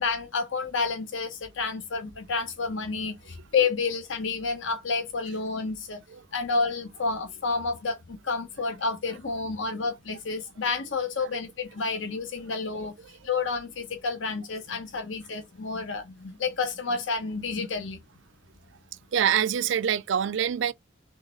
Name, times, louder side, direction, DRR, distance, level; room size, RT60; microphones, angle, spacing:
voice 1, 0.0-6.0 6.3-12.9 13.2-18.0, left 4 dB, 70° left, 0.9 m, -30 dB
voice 2, 19.1-20.7, right 8 dB, 70° right, 0.4 m, -25 dB
4.0 x 3.4 x 3.7 m
head